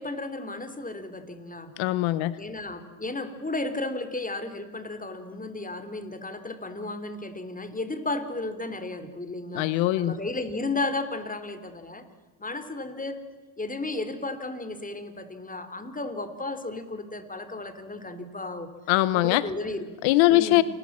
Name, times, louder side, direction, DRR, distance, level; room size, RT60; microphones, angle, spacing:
voice 1, 0.0-1.7 2.4-9.7 10.0-12.0 12.4-13.2 13.6-18.7 19.1-19.8 20.3-20.6, left 2 dB, 20° left, 11 dB, 3.5 m, -34 dB
voice 2, 1.8-2.4 9.5-10.1 18.9-19.4 20.0-20.6, left 17 dB, 90° left, 17 dB, 1.0 m, -21 dB
28.5 x 20.5 x 7.5 m, 1.4 s
supercardioid pair, 75°, 45 cm